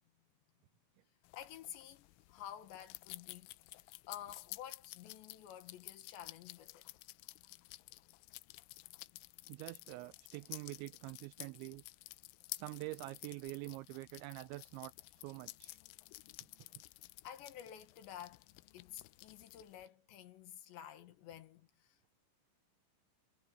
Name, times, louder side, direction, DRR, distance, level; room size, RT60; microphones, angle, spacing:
sound 1, 1.3-19.9, left 21 dB, 85° left, 3.3 m, -53 dB
voice 1, 1.3-3.5 3.8-6.8 17.2-18.4 18.7-22.2, left 10 dB, 70° left, 3.4 m, -51 dB
voice 2, 9.5-11.8 12.5-15.8, right 21 dB, 90° right, 2.6 m, -46 dB
omnidirectional pair, 5.8 m